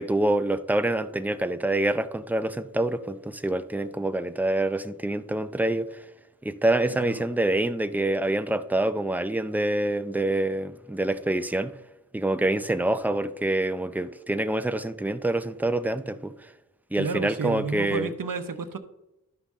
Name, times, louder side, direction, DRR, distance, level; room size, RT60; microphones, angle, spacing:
voice 1, 0.0-6.1 6.4-11.7 12.1-16.5 16.9-18.1, right 1 dB, 5° right, 11 dB, 0.5 m, -26 dB
voice 2, 6.9-7.2 17.0-18.8, right 5 dB, 65° right, 9 dB, 0.9 m, -31 dB
12.0 x 5.6 x 3.6 m, 0.93 s
wide cardioid pair, 55°, 36 cm